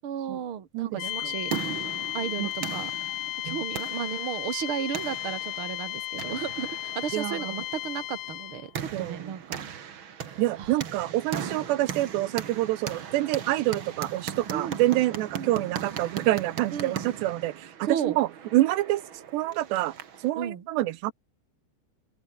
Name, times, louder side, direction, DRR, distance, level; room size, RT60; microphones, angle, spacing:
voice 1, 0.0-1.5 2.1-2.9 3.4-9.6 10.6-10.8 14.5-14.8 15.3-15.6 16.7-17.1 17.8-18.2 20.4-20.7, right 8 dB, 40° right, 2.3 m, -34 dB
voice 2, 0.7-1.4 2.4-2.5 3.4-3.6 7.1-7.4 8.9-9.3 10.4-17.7 18.0-19.0 19.3-19.9 20.2-21.1, right 16 dB, 80° right, 3.0 m, -27 dB
sound 1, 1.0-8.7, left 18 dB, 90° left, 2.0 m, -34 dB
sound 2, 1.1-20.3, right 7 dB, 60° right, 1.2 m, -39 dB
omnidirectional pair, 5.1 m